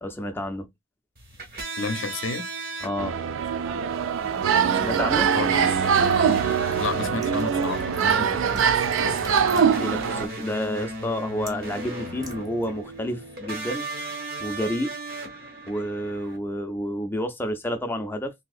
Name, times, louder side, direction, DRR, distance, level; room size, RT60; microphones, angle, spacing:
voice 1, 0.0-0.7 2.8-3.2 4.8-5.3 8.1-8.2 9.5-13.9 14.4-14.9 15.7-18.3, equal, 10° left, 0.4 m, -30 dB
sound 1, 1.2-16.4, right 2 dB, 50° right, 1.2 m, -37 dB
voice 2, 1.8-2.5 4.7-5.0 5.3-5.7 6.7-9.2, left 4 dB, 80° left, 0.5 m, -32 dB
sound 2, 3.0-10.3, right 7 dB, 80° right, 0.4 m, -23 dB
Liquid, 4.8-13.1, equal, 15° right, 0.8 m, -44 dB
3.5 x 2.7 x 2.4 m
head